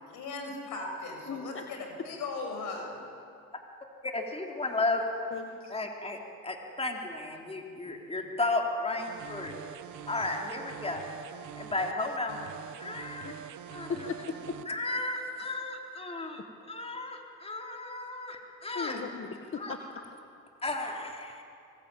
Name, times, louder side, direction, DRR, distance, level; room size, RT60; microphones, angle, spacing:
voice 1, 0.1-3.0, left 3 dB, 85° left, 3 dB, 6.4 m, -38 dB
voice 2, 1.3-1.6 5.3-5.7 13.2-13.5 13.9-14.6 18.7-20.1, left 5 dB, 45° left, 4 dB, 1.9 m, -38 dB
voice 3, 4.0-5.0 5.7-9.6 10.1-11.0 11.5-12.4 12.8-13.3 13.7-14.1 14.7-16.4 16.7-19.0 19.6-19.7 20.6-21.4, left 2 dB, 20° left, 1 dB, 3.6 m, -34 dB
sound 1, 9.0-14.6, right 9 dB, 80° right, 1.4 m, -44 dB
25.0 x 22.0 x 8.8 m, 2.5 s
cardioid pair, 90°, 30 cm